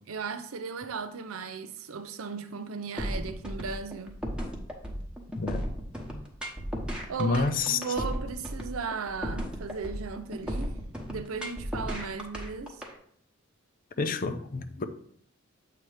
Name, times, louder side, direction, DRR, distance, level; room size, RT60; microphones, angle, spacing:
voice 1, 0.1-4.2 7.1-10.8 11.1-12.8, right 5 dB, 85° right, 0.6 m, -36 dB
sound 1, 3.0-12.9, equal, 5° right, 1.0 m, -35 dB
voice 2, 5.4-5.7 7.2-7.8 14.0-14.8, left 4 dB, 45° left, 0.5 m, -28 dB
7.6 x 2.9 x 4.9 m
head